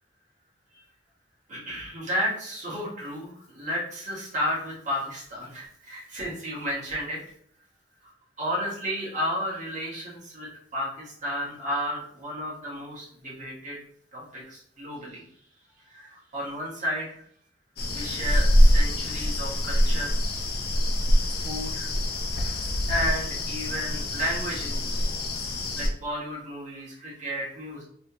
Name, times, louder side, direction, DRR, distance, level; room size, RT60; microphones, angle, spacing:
voice 1, 1.5-7.2 8.4-13.8 14.1-15.2 15.9-17.2 17.9-20.1 21.4-21.9 22.9-25.1 25.7-27.8, equal, 45° right, -6 dB, 1.5 m, -32 dB
sound 1, 17.8-25.9, equal, 55° left, 0.6 m, -24 dB
3.3 x 2.9 x 2.9 m, 0.64 s
head